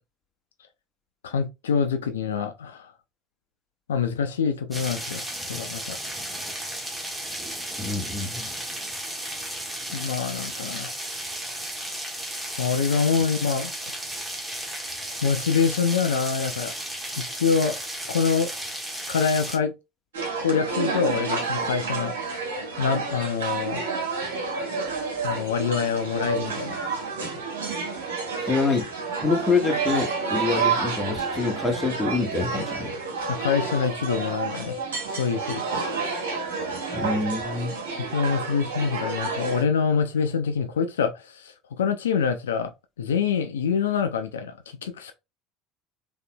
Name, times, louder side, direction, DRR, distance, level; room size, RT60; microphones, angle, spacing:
voice 1, 1.2-2.9 3.9-6.0 9.9-11.0 12.6-13.7 15.2-16.7 17.2-17.8 18.1-18.5 19.1-19.7 20.4-22.5 22.8-23.8 25.2-26.8 33.3-34.8 35.1-35.8 38.0-42.7 43.0-45.1, left 6 dB, 80° left, 0.5 m, -25 dB
sound 1, 4.7-19.6, right 1 dB, 5° right, 1.6 m, -34 dB
voice 2, 7.8-8.5 28.4-28.9 29.2-32.9 36.9-37.7, left 4 dB, 15° left, 1.6 m, -26 dB
sound 2, 20.1-39.6, right 4 dB, 80° right, 1.6 m, -29 dB
4.0 x 3.6 x 2.2 m
hypercardioid pair, 70°, 0 cm